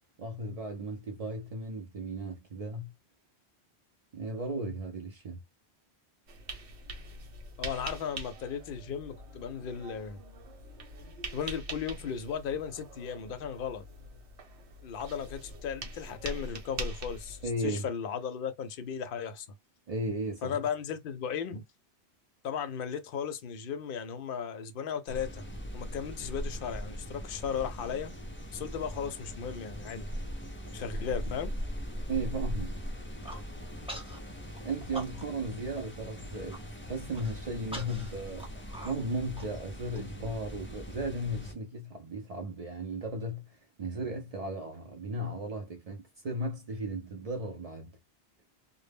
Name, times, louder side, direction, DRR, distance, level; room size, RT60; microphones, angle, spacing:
voice 1, 0.2-2.9 4.1-5.4 17.4-17.9 19.9-20.6 32.1-32.8 34.6-38.5 38.8-43.5 43.8-47.9, right 1 dB, 55° right, 0.4 m, -36 dB
sound 1, 6.3-17.5, right 2 dB, 80° right, 1.0 m, -43 dB
voice 2, 7.6-10.2 11.3-13.8 14.8-17.4 17.6-19.5 20.4-21.6 22.4-25.4 25.7-28.1 28.5-30.1 30.7-31.5, left 7 dB, 65° left, 0.7 m, -36 dB
sound 2, 25.1-41.5, equal, 20° left, 0.3 m, -40 dB
Human voice, 33.1-33.4 33.9-34.2 34.5-35.5 35.8-35.9 36.2-36.6 37.1-40.0, right 1 dB, 5° right, 0.9 m, -43 dB
2.1 x 2.0 x 3.3 m
omnidirectional pair, 1.1 m